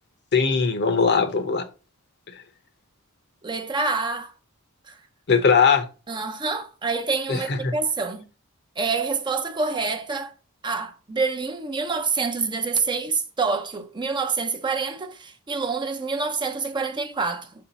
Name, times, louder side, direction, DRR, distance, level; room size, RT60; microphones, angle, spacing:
voice 1, 0.3-1.7 5.3-5.8 7.3-7.7, left 5 dB, 50° left, 0.8 m, -20 dB
voice 2, 3.4-4.3 4.9-5.0 6.1-8.2 8.8-10.3 10.6-17.5, right 4 dB, 20° right, 0.6 m, -27 dB
6.0 x 4.4 x 4.0 m
head